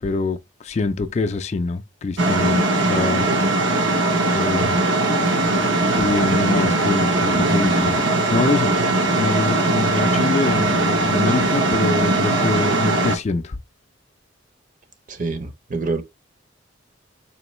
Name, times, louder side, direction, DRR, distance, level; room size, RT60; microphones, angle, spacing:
voice 1, 0.0-3.3 4.3-4.8 5.9-8.7 9.2-13.6, left 3 dB, 35° left, 0.4 m, -24 dB
sound 1, 2.2-13.2, right 2 dB, 75° right, 0.8 m, -20 dB
voice 2, 15.1-16.0, right 3 dB, 45° right, 0.6 m, -26 dB
4.3 x 3.0 x 3.0 m
head